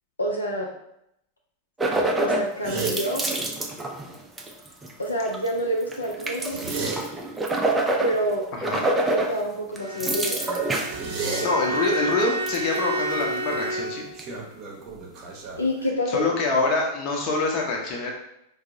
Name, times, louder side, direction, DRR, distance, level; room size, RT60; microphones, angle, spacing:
voice 1, 0.2-0.7 2.2-3.3 5.0-6.6 8.0-8.5 9.1-10.4 15.6-16.3, equal, 80° left, -1 dB, 0.4 m, -27 dB
sound 1, 1.8-2.5 2.8-4.9 5.2-5.5 5.8-8.4 8.6-9.3 9.8-11.0 11.6-11.9 12.5-12.8 13.2-13.3 14.2-14.3, right 2 dB, 10° right, 0.4 m, -26 dB
sound 2, 2.6-3.0 6.3-7.0 10.9-11.5 13.5-13.8 14.1-16.2, right 5 dB, 35° right, 0.7 m, -32 dB
voice 2, 8.5-8.8 11.4-14.1 16.1-18.1, left 3 dB, 40° left, 0 dB, 0.7 m, -25 dB
Bowed string instrument, 9.7-14.2, right 2 dB, 90° right, 0.6 m, -30 dB
4.4 x 2.0 x 2.6 m, 0.78 s
figure-of-eight pair, 90°, 0 cm